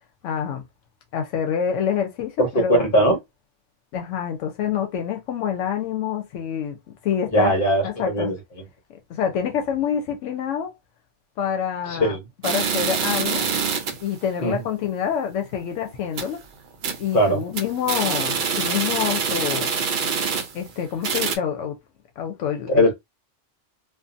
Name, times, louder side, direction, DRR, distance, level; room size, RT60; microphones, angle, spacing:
voice 1, 0.2-0.6 1.1-2.9 3.9-6.8 7.0-7.5 7.8-8.3 8.9-10.7 11.4-12.2 12.4-13.5 14.0-16.4 17.0-19.7 20.5-21.7 22.2-22.8, left 8 dB, 85° left, 0.9 m, -26 dB
voice 2, 2.4-3.2 7.3-8.3 11.9-12.2 14.4-14.6 17.1-17.4 22.7-22.9, equal, 50° left, 1.1 m, -20 dB
sound 1, 12.4-14.1 14.5-14.6 14.9-15.0 15.4-15.6 16.0-16.4 16.8-17.1 17.4-20.7 21.0-21.4, right 6 dB, 60° right, 0.5 m, -25 dB
2.6 x 2.3 x 2.5 m
omnidirectional pair, 1.2 m